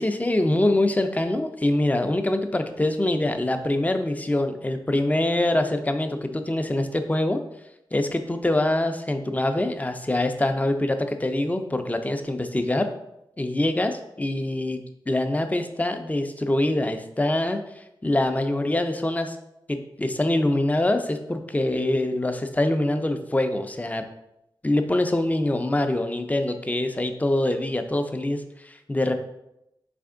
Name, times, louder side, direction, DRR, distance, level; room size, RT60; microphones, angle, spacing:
voice 1, 0.0-7.4 7.9-12.9 13.4-17.6 18.0-19.4 19.7-24.0 24.6-29.1, left 1 dB, 20° left, 7 dB, 0.5 m, -24 dB
4.2 x 3.4 x 3.7 m, 0.85 s
cardioid pair, 55°, 9 cm